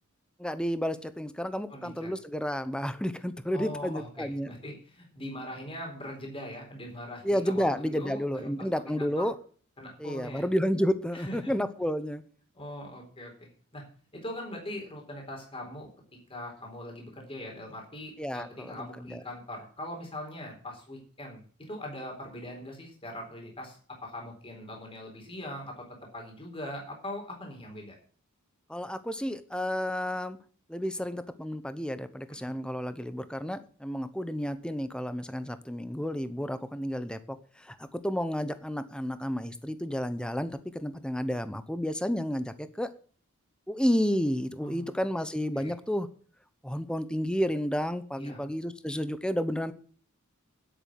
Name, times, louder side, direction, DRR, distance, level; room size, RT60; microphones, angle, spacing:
voice 1, 0.4-4.5 7.2-9.3 10.0-12.2 18.2-19.2 28.7-30.4 30.7-42.9 43.7-46.1 46.6-49.7, equal, 5° left, 12 dB, 0.8 m, -31 dB
voice 2, 1.7-2.1 3.5-8.5 8.8-9.3 9.8-10.5 11.1-11.5 12.5-13.8 14.1-15.9 16.3-28.0 32.4-32.5 44.6-44.9 45.5-45.7 48.2-48.4, left 1 dB, 25° left, 1 dB, 4.1 m, -41 dB
10.5 x 8.3 x 7.5 m, 0.44 s
head